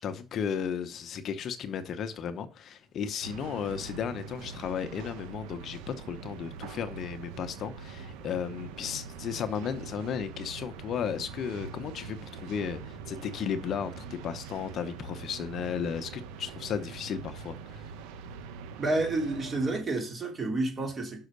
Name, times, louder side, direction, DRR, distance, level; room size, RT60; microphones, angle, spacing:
voice 1, 0.0-17.9, left 7 dB, 45° left, 0.9 m, -34 dB
sound 1, 3.2-19.8, right 6 dB, 85° right, 1.1 m, -43 dB
voice 2, 18.8-21.2, right 2 dB, 30° right, 3.4 m, -29 dB
6.3 x 5.6 x 6.7 m
cardioid pair, 115°, 0 cm